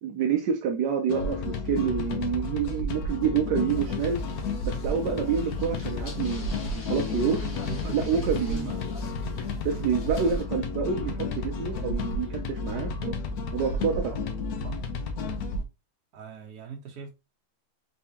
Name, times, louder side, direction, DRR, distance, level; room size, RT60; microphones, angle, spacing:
voice 1, 0.0-4.2 4.6-7.5 7.9-8.7 9.6-13.1 13.5-14.1, right 7 dB, 70° right, 1.0 m, -28 dB
sound 1, 1.1-15.6, left 3 dB, 65° left, 0.9 m, -32 dB
sound 2, 3.7-10.4, left 3 dB, 50° left, 1.3 m, -45 dB
voice 2, 7.7-8.8 14.6-14.8 16.1-17.1, right 6 dB, 50° right, 1.5 m, -40 dB
4.1 x 3.7 x 2.8 m
omnidirectional pair, 2.3 m